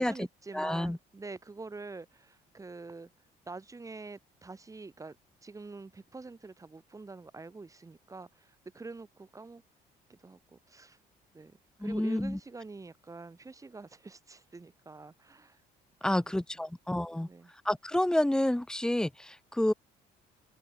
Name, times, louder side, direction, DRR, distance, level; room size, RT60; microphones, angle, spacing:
voice 1, 0.0-3.1 3.5-5.2 5.4-9.6 10.1-11.0 11.3-15.6 16.0-16.3 17.1-17.5, right 3 dB, 20° right, 2.6 m, -46 dB
voice 2, 0.5-1.0 11.8-12.4 16.0-17.3 17.6-19.7, left 1 dB, 5° left, 0.6 m, -29 dB
open air
cardioid pair, 110°, 17 cm